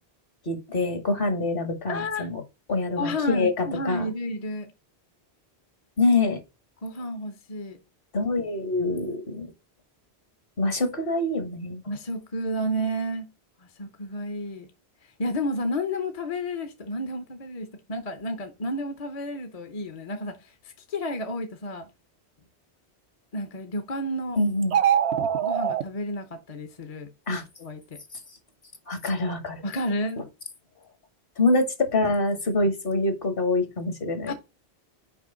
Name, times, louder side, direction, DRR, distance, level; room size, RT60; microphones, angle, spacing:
voice 1, 0.4-2.4 2.7-4.1 6.0-6.4 8.1-9.5 10.6-11.8 24.4-24.8 27.3-27.4 28.9-29.6 31.4-34.3, left 2 dB, 60° left, 1.6 m, -25 dB
voice 2, 1.9-2.3 3.0-4.7 6.8-7.8 11.8-13.3 13.8-14.7 15.2-20.5 20.9-21.9 23.3-24.4 25.4-27.1 27.6-28.0 29.6-30.3 34.3-34.4, equal, 40° left, 0.8 m, -31 dB
sound 1, 24.6-25.8, right 9 dB, 90° right, 1.1 m, -22 dB
6.1 x 5.0 x 3.8 m
omnidirectional pair, 1.1 m